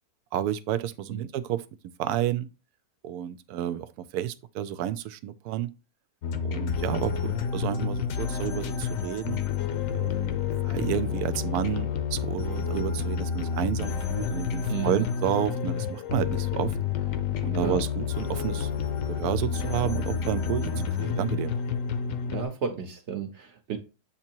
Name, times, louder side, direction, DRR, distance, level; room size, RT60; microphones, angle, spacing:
voice 1, 0.3-1.6 2.0-2.5 3.0-5.7 6.4-9.4 9.9-16.7 17.4-18.7 19.1-20.7 21.0-21.5, right 11 dB, 80° right, 1.1 m, -30 dB
sound 1, 6.2-22.4, left 7 dB, 65° left, 1.0 m, -29 dB
voice 2, 14.7-15.1 17.6-17.8 20.7-20.9 22.3-23.8, right 6 dB, 55° right, 1.0 m, -33 dB
7.5 x 2.8 x 4.4 m
omnidirectional pair, 1.7 m